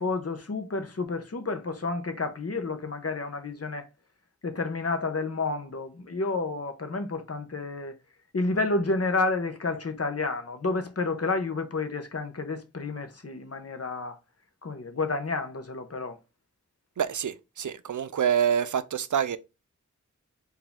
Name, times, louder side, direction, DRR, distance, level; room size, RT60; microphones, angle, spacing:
voice 1, 0.0-3.9 4.4-7.9 8.3-14.2 14.6-16.2, left 3 dB, 50° left, 0.9 m, -30 dB
voice 2, 17.0-19.4, right 8 dB, 75° right, 0.5 m, -26 dB
4.7 x 2.7 x 3.5 m
wide cardioid pair, 45°, 30 cm